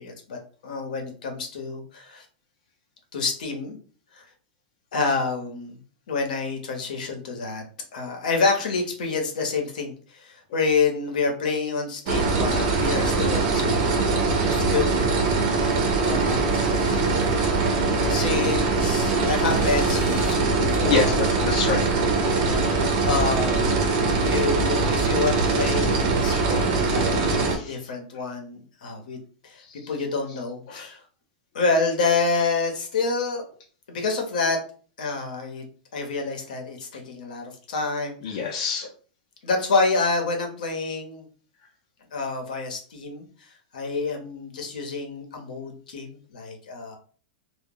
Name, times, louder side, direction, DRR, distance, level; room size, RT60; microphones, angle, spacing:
voice 1, 0.0-2.2 3.1-3.8 4.1-4.2 4.9-5.8 6.1-7.6 7.9-14.0 14.4-14.9 16.0-16.4 16.7-17.5 18.0-21.2 22.4-22.8 23.0-23.7 24.2-29.2 29.4-29.6 29.9-31.0 31.5-33.4 33.9-34.6 35.0-35.6 35.9-38.4 39.4-41.2 42.1-43.2 43.7-47.0, left 4 dB, 70° left, 3 dB, 0.8 m, -28 dB
sound 1, 12.1-27.6, right 3 dB, 40° right, 0.5 m, -22 dB
voice 2, 15.2-15.6 20.8-21.8 22.6-23.0 26.2-26.5 27.1-27.8 29.7-29.9 30.7-31.0 38.2-38.9, left 5 dB, 45° left, -2 dB, 0.5 m, -28 dB
sound 2, 17.7-20.3, left 1 dB, 10° left, 0.8 m, -43 dB
2.2 x 2.0 x 3.6 m, 0.42 s
supercardioid pair, 175°, 5 cm